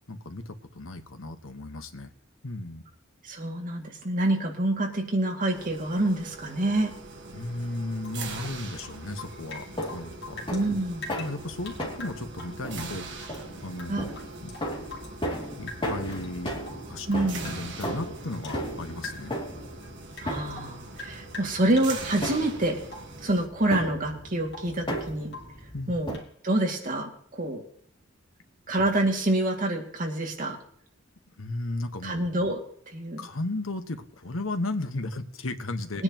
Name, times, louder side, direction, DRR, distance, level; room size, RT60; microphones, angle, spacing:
voice 1, 0.1-2.1 2.4-2.9 7.3-10.5 11.2-14.0 14.4-14.5 15.6-17.1 17.4-19.3 25.7-25.9 31.4-32.2 33.2-36.0, left 2 dB, 85° left, 7 dB, 1.3 m, -35 dB
voice 2, 3.2-7.0 10.5-11.1 13.9-14.0 17.1-17.5 20.2-22.8 23.2-25.3 25.9-26.2 26.4-27.6 28.7-30.6 32.0-32.6 32.9-33.2 35.9-36.0, right 1 dB, 40° right, 2 dB, 2.3 m, -27 dB
sound 1, 5.5-23.5, right 3 dB, 60° right, 1.6 m, -43 dB
Rain / Drip, 8.0-10.7 11.0-13.4 13.7-15.4 15.7-16.3 16.6-18.6 19.0-19.4 19.8-22.3 22.9-23.2 23.6-24.0 24.2-24.8 25.3-25.6 26.1-26.3, left 3 dB, 60° left, 2.7 m, -44 dB
sound 2, 9.2-26.2, equal, 25° left, 2.5 m, -37 dB
21.5 x 9.7 x 3.0 m, 0.62 s
head